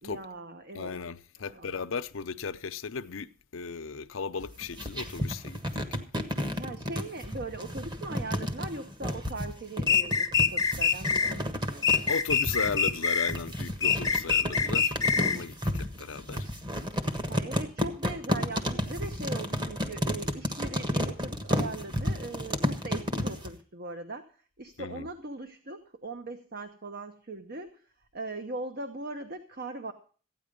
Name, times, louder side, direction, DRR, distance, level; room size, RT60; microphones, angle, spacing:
voice 1, 0.0-1.0 1.4-1.7 6.5-11.8 17.3-24.3 24.6-27.8 28.1-29.9, right 2 dB, 50° right, 1.0 m, -40 dB
voice 2, 0.7-5.8 12.1-16.5 24.8-25.1, left 5 dB, 90° left, 0.7 m, -36 dB
sound 1, 4.4-23.5, equal, 25° right, 1.4 m, -32 dB
sound 2, 9.9-11.3 11.8-13.4 13.8-15.4, left 6 dB, 20° left, 0.7 m, -25 dB
14.5 x 9.5 x 5.2 m
head